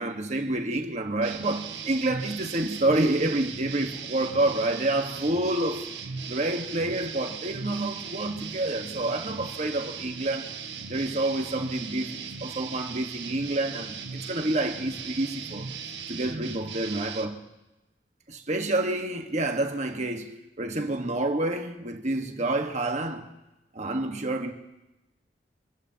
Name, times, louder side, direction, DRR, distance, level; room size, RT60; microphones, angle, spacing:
voice 1, 0.0-5.9 6.3-10.5 10.9-15.7 16.1-17.4 18.3-23.3 23.7-24.5, right 2 dB, 40° right, 1.4 m, -28 dB
sound 1, 1.2-17.3, right 5 dB, 90° right, 1.5 m, -38 dB
27.5 x 15.0 x 2.9 m
head